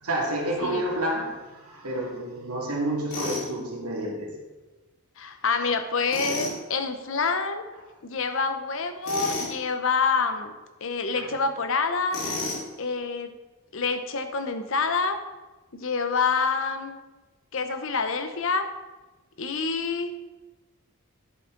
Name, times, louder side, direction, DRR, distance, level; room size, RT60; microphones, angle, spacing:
voice 1, 0.0-4.3 11.2-11.3, right 1 dB, 85° right, -1 dB, 2.4 m, -29 dB
Tools, 3.1-3.5 6.1-6.6 9.0-9.5 12.1-12.7, left 2 dB, 80° left, 3.8 m, -31 dB
voice 2, 5.2-7.6 8.0-10.5 10.8-12.2 12.8-13.4 13.7-15.2 15.7-16.9 17.5-18.7 19.4-20.2, left 4 dB, 60° left, 8 dB, 0.8 m, -27 dB
10.5 x 8.0 x 3.9 m, 1.2 s
head